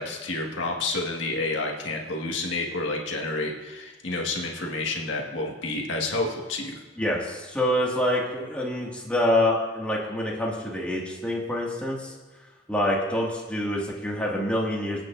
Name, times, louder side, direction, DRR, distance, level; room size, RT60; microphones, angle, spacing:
voice 1, 0.0-6.8, left 2 dB, 90° left, 0 dB, 1.8 m, -29 dB
voice 2, 7.0-12.1 12.7-15.0, left 1 dB, 5° left, -4 dB, 2.1 m, -26 dB
24.5 x 9.0 x 2.6 m, 1.2 s
head